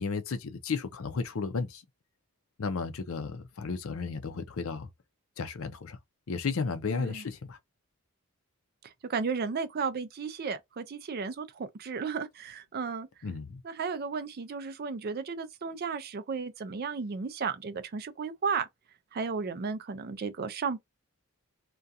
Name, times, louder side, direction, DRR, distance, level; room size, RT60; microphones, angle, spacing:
voice 1, 0.0-1.8 2.6-4.9 5.4-6.0 6.3-7.6 13.2-13.6, left 4 dB, 70° left, 0.5 m, -33 dB
voice 2, 6.9-7.2 8.8-13.1 13.6-18.7 19.1-20.8, right 5 dB, 45° right, 0.4 m, -34 dB
2.4 x 2.3 x 2.6 m
head